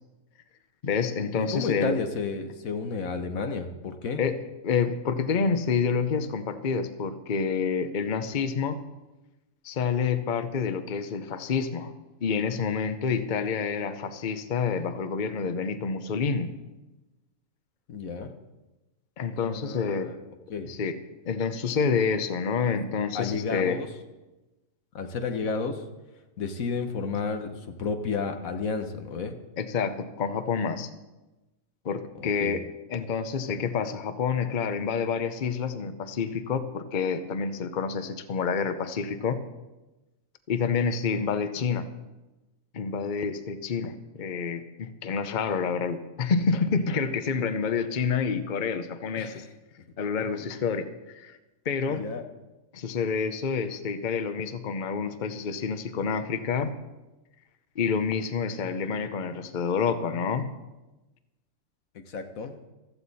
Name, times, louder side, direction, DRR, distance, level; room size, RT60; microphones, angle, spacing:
voice 1, 0.8-2.0 4.2-4.4 4.6-8.8 9.6-11.9 12.2-16.5 19.2-20.1 20.6-21.0 21.2-23.8 29.6-30.9 31.8-39.4 40.5-41.9 42.7-49.5 50.0-51.4 51.6-52.1 52.7-56.7 57.8-60.5, left 5 dB, 40° left, 10 dB, 0.8 m, -28 dB
voice 2, 1.4-4.2 17.9-18.3 19.3-20.2 20.5-20.7 23.1-23.9 24.9-25.8 26.4-29.4 32.2-32.6 49.2-49.4 50.4-50.5 51.9-52.2 61.9-62.5, left 5 dB, 85° left, 6 dB, 1.5 m, -32 dB
15.0 x 14.0 x 4.1 m, 1.1 s
omnidirectional pair, 1.4 m